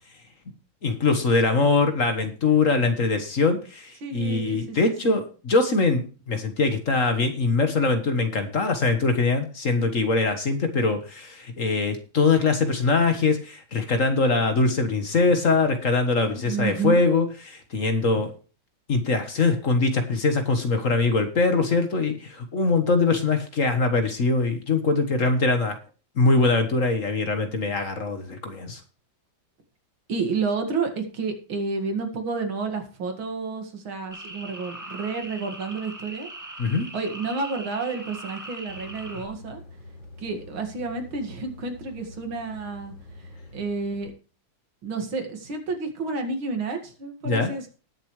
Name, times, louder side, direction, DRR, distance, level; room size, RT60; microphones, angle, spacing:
voice 1, 0.8-18.3 18.9-25.8 26.2-28.8 36.6-36.9 47.2-47.5, left 3 dB, 45° left, 7 dB, 1.7 m, -22 dB
voice 2, 4.0-4.8 5.0-5.2 16.3-17.0 30.1-36.3 36.9-39.6 40.2-44.1 44.8-47.7, right 4 dB, 90° right, 5 dB, 2.8 m, -30 dB
sound 1, 34.1-39.3, right 1 dB, 10° right, 1.7 m, -40 dB
sound 2, 38.7-44.1, left 2 dB, 90° left, 4.9 m, -46 dB
19.5 x 7.2 x 3.2 m, 0.36 s
omnidirectional pair, 2.1 m